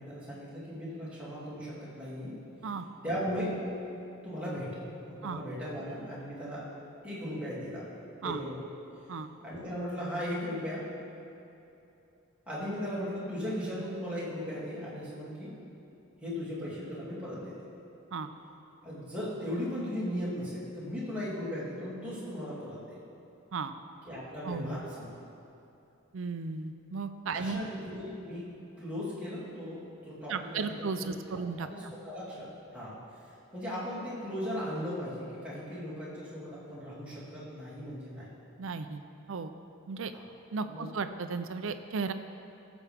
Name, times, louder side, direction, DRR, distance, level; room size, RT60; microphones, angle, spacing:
voice 1, 0.0-2.4 3.0-3.6 4.2-4.8 5.1-6.6 7.0-7.9 8.2-8.6 9.4-10.9 12.5-15.6 16.2-17.6 18.8-23.0 24.0-25.1 27.3-30.7 31.0-33.0 33.5-38.3 40.7-40.9, equal, 5° right, -10 dB, 2.6 m, -37 dB
voice 2, 24.4-24.8 26.1-27.6 30.3-31.9 38.6-39.0 39.3-39.5 39.9-40.1 40.5-42.1, right 4 dB, 65° right, 9 dB, 0.5 m, -35 dB
15.5 x 7.1 x 3.5 m, 2.8 s
head